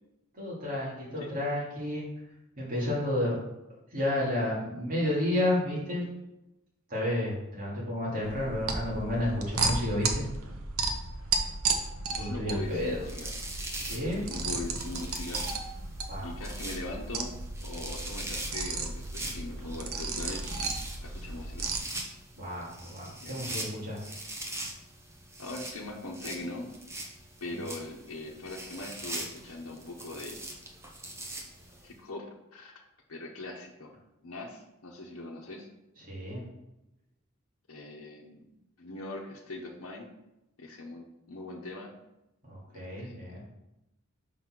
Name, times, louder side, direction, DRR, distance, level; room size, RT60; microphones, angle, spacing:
voice 1, 0.3-2.1 2.6-3.4 3.9-6.0 6.9-10.3 12.2-13.0 13.8-14.3 16.1-16.3 22.4-24.0 27.5-27.6 36.0-36.4 42.5-43.4, left 1 dB, 40° right, -5 dB, 2.4 m, -31 dB
sound 1, 8.2-21.8, right 4 dB, 85° right, 0.8 m, -34 dB
voice 2, 12.1-13.3 14.3-15.5 16.2-20.5 21.0-21.7 23.2-23.8 25.4-26.7 27.4-30.4 31.8-32.2 32.5-32.7 33.1-33.9 34.2-35.7 37.7-38.4 38.8-40.1 40.6-41.9 42.7-43.2, left 2 dB, 80° left, -2 dB, 1.0 m, -41 dB
sound 2, 12.7-31.9, right 1 dB, 15° right, 0.9 m, -42 dB
5.4 x 4.2 x 5.9 m, 0.91 s
head